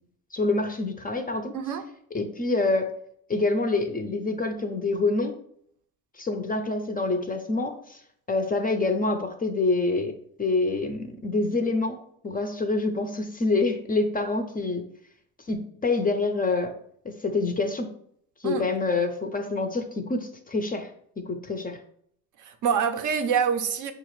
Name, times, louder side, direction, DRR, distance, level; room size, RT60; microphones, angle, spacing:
voice 1, 0.3-1.5 2.1-2.9 3.3-5.3 6.2-8.0 8.3-10.1 10.4-14.9 15.5-16.7 17.0-17.9 18.4-20.9 21.2-21.8, left 3 dB, 20° left, 0.4 m, -26 dB
voice 2, 22.4-23.9, right 7 dB, 45° right, 0.5 m, -26 dB
4.8 x 2.4 x 3.1 m
supercardioid pair, 80°, 42 cm